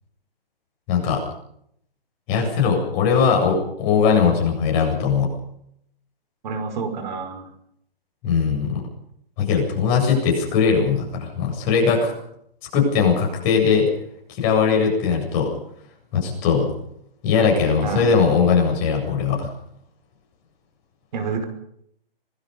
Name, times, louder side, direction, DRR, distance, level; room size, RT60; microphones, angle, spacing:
voice 1, 0.9-1.2 2.3-5.3 8.2-8.8 9.4-12.1 12.7-13.9 14.3-15.5 16.1-16.7 17.2-19.5, left 6 dB, 25° left, 1 dB, 7.8 m, -20 dB
voice 2, 6.4-7.5 17.8-18.1 21.1-21.4, right 5 dB, 50° right, 7 dB, 5.2 m, -28 dB
26.5 x 20.0 x 5.4 m, 0.70 s
hypercardioid pair, 150°, 30 cm